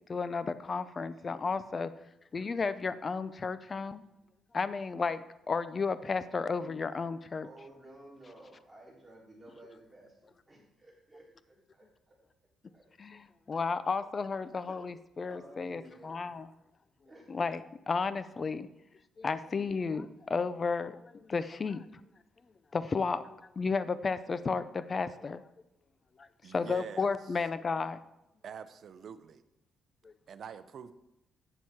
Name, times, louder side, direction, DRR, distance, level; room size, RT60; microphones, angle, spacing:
voice 1, 0.1-1.9 2.3-4.0 4.5-7.5 13.0-16.5 17.3-18.7 19.2-21.9 22.7-25.5 26.2-28.0 30.0-30.1, left 4 dB, 35° left, 14 dB, 0.5 m, -33 dB
voice 2, 7.4-12.2 12.7-12.8 13.9-14.0 14.7-14.8 15.2-16.2 17.0-17.3, right 1 dB, 10° right, -5 dB, 4.1 m, -54 dB
voice 3, 26.4-27.1 28.4-29.4 30.3-30.9, right 7 dB, 60° right, 12 dB, 0.6 m, -45 dB
8.8 x 7.1 x 4.7 m, 0.88 s
cardioid pair, 90°, 0 cm